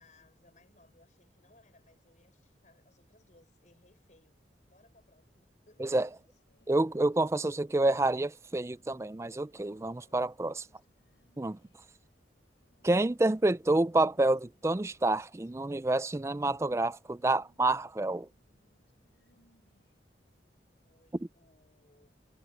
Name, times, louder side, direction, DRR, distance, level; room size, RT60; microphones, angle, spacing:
voice 1, 0.0-6.1 20.8-22.1, left 2 dB, 45° left, 6.4 m, -64 dB
sound 1, 5.7-20.1, left 1 dB, 90° left, 7.2 m, -72 dB
voice 2, 6.7-10.7 11.4-11.6 12.8-18.3 21.2-21.3, right 2 dB, 15° right, 0.4 m, -28 dB
head